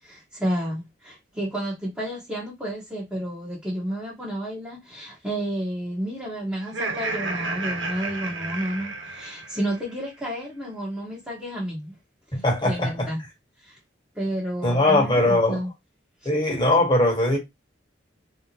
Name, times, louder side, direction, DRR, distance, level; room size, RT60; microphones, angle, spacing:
voice 1, 0.0-12.0 12.4-13.2 13.6-13.8 14.1-15.7 16.2-16.4, right 1 dB, 5° right, 1.1 m, -31 dB
Laughter, 6.6-9.8, right 2 dB, 85° right, 1.0 m, -31 dB
voice 2, 12.3-13.1 14.6-15.6 16.2-17.4, left 1 dB, 25° left, 1.4 m, -20 dB
3.6 x 3.0 x 2.7 m
head